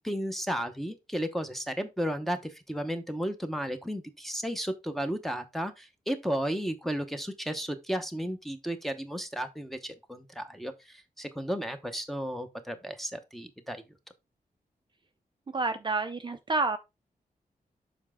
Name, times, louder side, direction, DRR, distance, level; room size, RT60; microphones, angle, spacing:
voice 1, 0.0-13.8, equal, ahead, 0.8 m, -34 dB
voice 2, 15.5-16.8, right 3 dB, 30° right, 0.5 m, -29 dB
7.1 x 5.0 x 3.6 m
wide cardioid pair, 175°, 15 cm